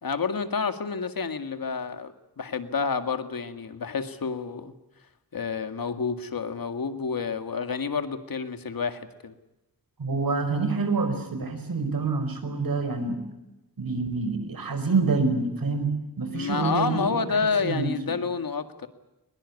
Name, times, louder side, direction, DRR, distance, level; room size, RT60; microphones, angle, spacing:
voice 1, 0.0-4.7 5.3-9.3 16.3-18.9, left 5 dB, 70° left, 9 dB, 2.0 m, -29 dB
voice 2, 10.0-13.2 13.8-17.1 17.6-17.9, right 4 dB, 70° right, 8 dB, 5.1 m, -27 dB
23.0 x 21.0 x 9.6 m, 0.96 s
wide cardioid pair, 125°, 36 cm